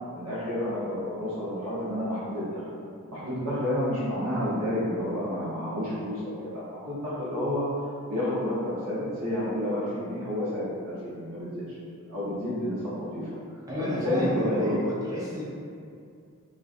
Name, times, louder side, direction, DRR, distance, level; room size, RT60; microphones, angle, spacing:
voice 1, 0.1-2.6 3.1-7.6 8.1-11.6 12.1-12.8 13.1-13.3 13.8-14.8, left 1 dB, 75° right, -10 dB, 0.8 m, -30 dB
voice 2, 13.7-15.4, left 1 dB, 15° right, -8 dB, 0.5 m, -31 dB
2.4 x 2.2 x 2.5 m, 2.4 s
head